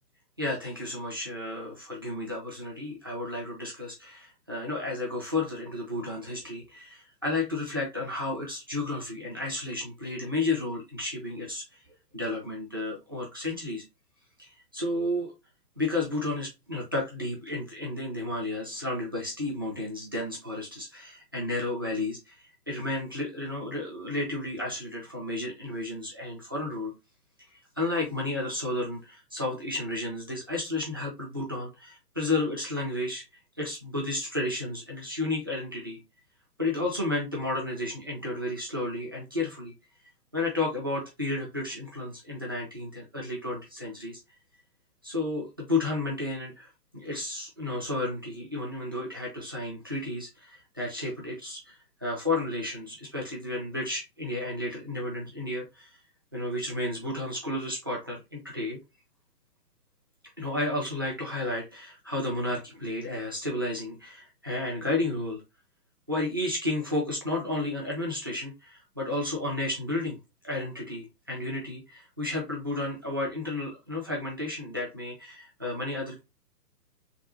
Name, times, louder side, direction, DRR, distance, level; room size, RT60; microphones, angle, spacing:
voice 1, 0.4-11.8 12.1-13.8 14.4-15.3 15.8-26.9 27.8-33.2 33.6-36.0 36.6-39.7 40.3-44.2 45.0-46.7 46.9-55.9 56.3-58.8 60.4-65.4 66.1-70.2 70.4-76.2, left 2 dB, 15° right, -3 dB, 0.5 m, -32 dB
3.5 x 3.0 x 4.2 m, 0.24 s
hypercardioid pair, 160°, 47 cm